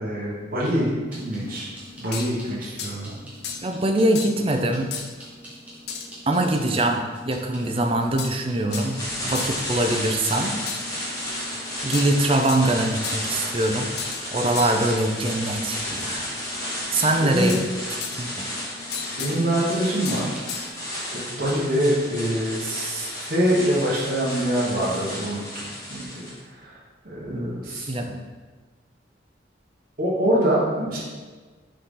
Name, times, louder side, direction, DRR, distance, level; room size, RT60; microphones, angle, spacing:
voice 1, 0.0-1.7 2.0-3.2 17.2-17.5 19.1-20.3 21.1-25.4 25.9-26.8 27.0-27.9 30.0-31.0, equal, 50° right, -8 dB, 1.3 m, -25 dB
sound 1, 1.1-20.7, left 2 dB, 10° right, 1.3 m, -45 dB
sound 2, 2.1-2.4 2.8-3.0 3.4-3.7 4.2-4.4 4.9-5.1 5.9-6.1 6.4-6.9 8.2-8.4 8.7-8.9 9.3-9.6 10.2-10.9 11.9-12.7 13.0-13.4 14.0-14.3 14.6-14.9 17.0-17.7 18.0-18.4 18.9-19.4 20.1-20.7, left 6 dB, 60° left, 0.6 m, -34 dB
voice 2, 3.6-4.9 6.3-10.6 11.8-13.9 14.3-16.2 16.9-17.6 18.2-18.5 27.3-27.6 27.9-28.2, right 1 dB, 30° right, 4 dB, 0.5 m, -23 dB
sound 3, 8.7-26.4, left 1 dB, 20° left, 1.6 m, -32 dB
6.7 x 4.0 x 3.7 m, 1.4 s
head